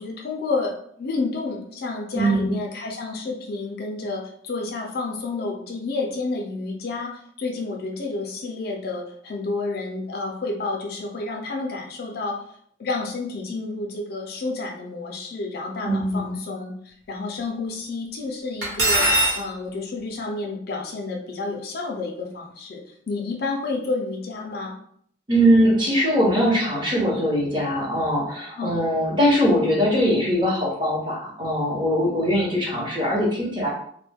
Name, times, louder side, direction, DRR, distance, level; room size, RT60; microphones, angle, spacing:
voice 1, 0.0-12.4 12.8-24.7 28.6-28.8, left 3 dB, 50° left, 1 dB, 0.4 m, -30 dB
voice 2, 2.1-2.6 15.8-16.4 25.3-33.7, equal, 25° right, -4 dB, 0.8 m, -21 dB
Cutlery silverware, 18.6-19.4, right 1 dB, 60° right, 1.0 m, -20 dB
2.1 x 2.1 x 3.3 m, 0.62 s
head